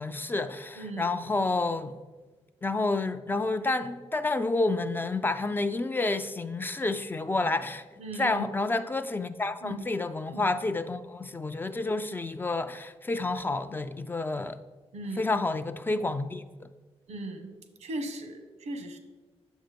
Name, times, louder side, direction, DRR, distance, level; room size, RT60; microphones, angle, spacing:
voice 1, 0.0-2.0 2.6-7.8 8.2-14.6 15.2-16.7, left 3 dB, 20° left, 0.4 m, -29 dB
voice 2, 0.7-1.1 8.0-8.5 9.6-9.8 10.3-10.4 14.9-15.3 17.1-17.5 17.8-19.0, right 2 dB, 90° right, 1.4 m, -37 dB
9.0 x 7.3 x 5.2 m
wide cardioid pair, 140°, 11 cm